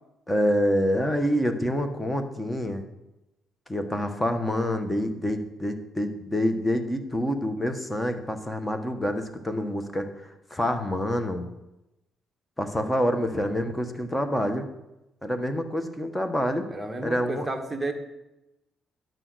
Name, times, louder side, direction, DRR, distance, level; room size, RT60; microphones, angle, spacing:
voice 1, 0.3-2.8 3.7-10.1 10.5-11.5 12.6-14.7 15.2-16.6 17.0-17.5, equal, 10° left, 7 dB, 1.4 m, -27 dB
voice 2, 16.7-17.9, right 2 dB, 15° right, 4 dB, 1.5 m, -31 dB
11.0 x 6.2 x 6.3 m, 0.95 s
cardioid pair, 90°, 0 cm